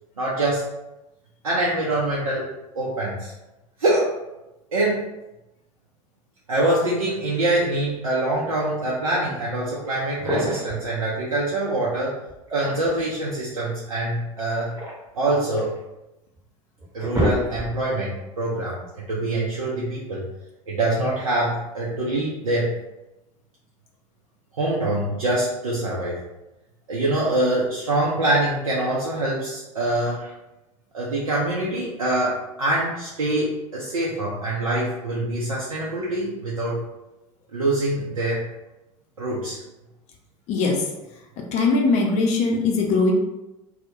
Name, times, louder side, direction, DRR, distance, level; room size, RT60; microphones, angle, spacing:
voice 1, 0.2-0.7 1.4-2.5 2.7-3.3 3.8-4.2 4.7-5.0 6.5-12.2 12.5-14.7 15.1-15.7 16.9-20.3 20.7-22.8 24.6-26.2 26.9-30.3 30.9-36.8 37.5-38.5 39.2-39.6, right 1 dB, 80° right, -6 dB, 0.5 m, -24 dB
sound 1, 10.1-10.8 12.3-13.1 14.4-15.8 16.4-16.5 16.8-17.9, equal, 15° right, 0.8 m, -28 dB
voice 2, 40.5-40.8 41.5-43.1, left 3 dB, 40° left, 1 dB, 0.5 m, -20 dB
2.1 x 2.0 x 2.9 m, 0.96 s
figure-of-eight pair, 75°, 18 cm